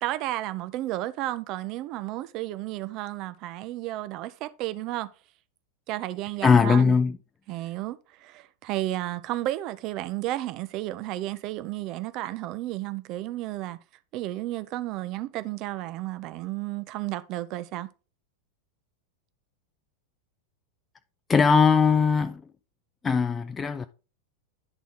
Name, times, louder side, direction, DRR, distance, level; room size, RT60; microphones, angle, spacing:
voice 1, 0.0-5.1 5.9-6.9 7.5-13.8 14.1-17.9, right 15 dB, 40° right, 0.5 m, -32 dB
voice 2, 6.4-7.2 21.3-22.4 23.0-23.9, left 5 dB, 15° left, 0.3 m, -20 dB
10.5 x 4.0 x 3.6 m
figure-of-eight pair, 90°, 0 cm